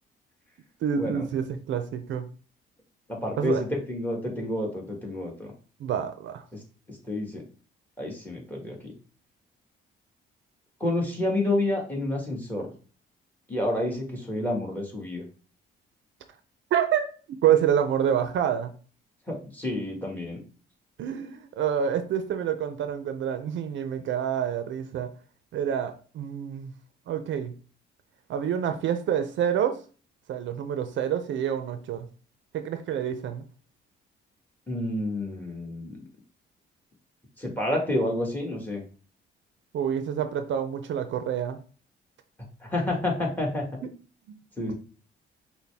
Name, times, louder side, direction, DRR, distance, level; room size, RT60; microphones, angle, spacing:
voice 1, 0.8-2.3 3.4-3.6 5.8-6.4 16.7-17.1 17.4-18.7 21.0-25.1 25.5-26.7 27.1-27.5 28.3-29.8 30.3-32.1 32.5-33.4 39.7-41.6, right 9 dB, 70° right, 8 dB, 0.5 m, -27 dB
voice 2, 3.1-5.5 6.5-6.6 6.9-7.4 8.0-8.9 10.8-12.7 13.5-15.2 19.3-20.4 34.7-36.0 37.4-38.8 42.6-43.7 44.6-44.7, left 1 dB, 10° left, 0 dB, 1.7 m, -29 dB
5.7 x 2.2 x 3.4 m, 0.38 s
cardioid pair, 90°, 20 cm